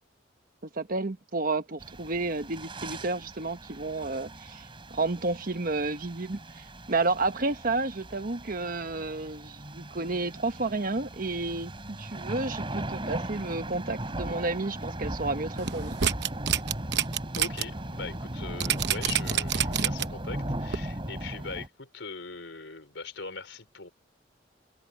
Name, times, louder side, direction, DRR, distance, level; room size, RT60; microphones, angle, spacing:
voice 1, 0.7-4.6 4.9-16.0, right 3 dB, 50° right, 1.3 m, -31 dB
sound 1, 1.8-21.7, right 1 dB, 30° right, 3.6 m, -37 dB
sound 2, 15.6-17.6 18.0-18.1 18.6-20.3 20.7-20.8, right 9 dB, 65° right, 0.9 m, -27 dB
voice 2, 17.4-23.9, left 4 dB, 85° left, 4.0 m, -41 dB
head